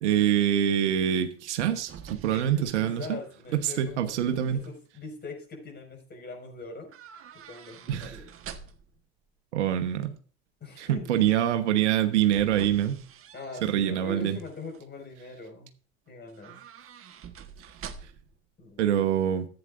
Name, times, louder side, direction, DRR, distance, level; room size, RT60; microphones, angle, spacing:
voice 1, 0.0-3.2 3.6-4.6 7.9-8.2 9.5-10.1 10.8-13.0 13.6-14.4 18.8-19.5, right 10 dB, 80° right, 1.1 m, -25 dB
sound 1, 1.4-3.8 4.1-4.7 6.9-9.0 11.8-13.9 14.3-14.8 16.3-18.4 18.6-18.7, right 8 dB, 40° right, 1.3 m, -46 dB
voice 2, 2.3-6.9 7.3-8.3 10.6-11.1 13.3-15.7 16.1-16.6 18.6-19.1, left 4 dB, 30° left, 5.3 m, -42 dB
14.5 x 8.9 x 2.5 m
hypercardioid pair, 75°, 34 cm